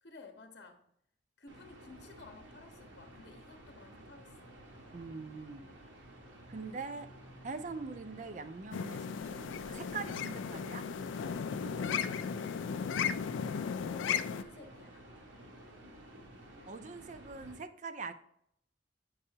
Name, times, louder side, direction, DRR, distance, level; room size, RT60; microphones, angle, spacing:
voice 1, 0.0-0.8 1.4-4.5 6.5-7.0 7.6-7.8 11.8-12.9 13.2-15.1, left 3 dB, 60° left, 5 dB, 0.8 m, -54 dB
sound 1, 1.5-17.6, right 1 dB, 85° right, 1.4 m, -53 dB
voice 2, 4.9-5.7 6.5-7.1 7.4-10.8 11.6-11.9 16.7-18.1, right 4 dB, 40° right, 11 dB, 0.4 m, -43 dB
sound 2, 8.7-14.4, left 7 dB, 85° left, 0.3 m, -35 dB
8.6 x 5.4 x 2.8 m, 0.71 s
head